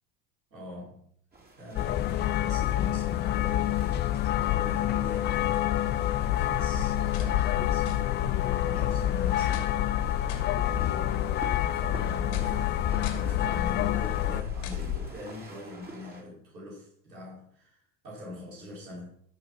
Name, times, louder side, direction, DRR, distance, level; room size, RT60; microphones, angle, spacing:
voice 1, 0.5-1.1 1.6-19.1, left 2 dB, 85° right, -4 dB, 5.0 m, -43 dB
sound 1, 1.3-16.2, right 2 dB, 20° right, 3.3 m, -49 dB
sound 2, 1.8-14.4, left 13 dB, 25° left, 0.3 m, -28 dB
sound 3, 6.1-15.0, left 9 dB, 65° left, 2.7 m, -34 dB
13.5 x 6.1 x 6.0 m, 0.66 s
hypercardioid pair, 75°, 49 cm